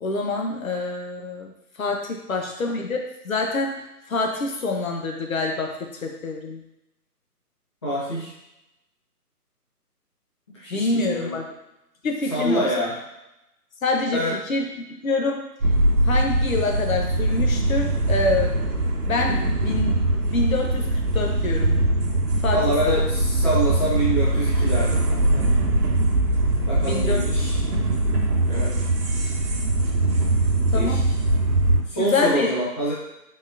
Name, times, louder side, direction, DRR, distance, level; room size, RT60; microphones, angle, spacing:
voice 1, 0.0-1.5 1.8-3.7 4.1-5.7 6.0-6.6 10.7-11.4 12.0-12.8 13.8-14.2 14.5-15.4 16.0-18.5 19.1-20.0 20.3-20.9 21.1-21.9 22.4-22.6 22.9-23.1 26.9-27.6 30.7-31.0 32.0-32.5, left 3 dB, 55° left, 1 dB, 0.8 m, -26 dB
voice 2, 7.8-8.3 10.5-11.4 12.3-12.9 14.1-14.4 22.5-25.4 26.7-27.5 28.5-28.7 30.7-31.0 31.9-32.9, right 1 dB, 20° left, -8 dB, 0.6 m, -26 dB
sound 1, 15.6-31.8, right 1 dB, 65° right, 1.1 m, -22 dB
4.0 x 3.8 x 2.5 m, 0.89 s
figure-of-eight pair, 145°, 48 cm